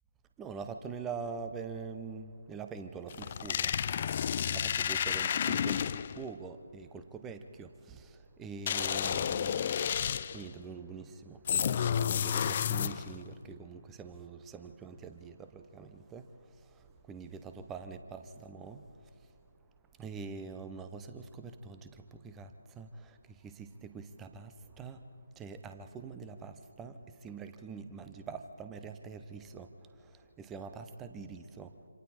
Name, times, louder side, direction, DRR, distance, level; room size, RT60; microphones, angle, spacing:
voice 1, 0.4-3.7 4.5-18.9 20.0-25.0 25.4-31.7, right 5 dB, 10° right, 9 dB, 0.8 m, -45 dB
sound 1, 3.1-6.2 8.7-10.5 11.5-13.2, left 8 dB, 30° left, 0.4 m, -31 dB
27.0 x 26.0 x 4.3 m, 2.5 s
figure-of-eight pair, 150°, 0 cm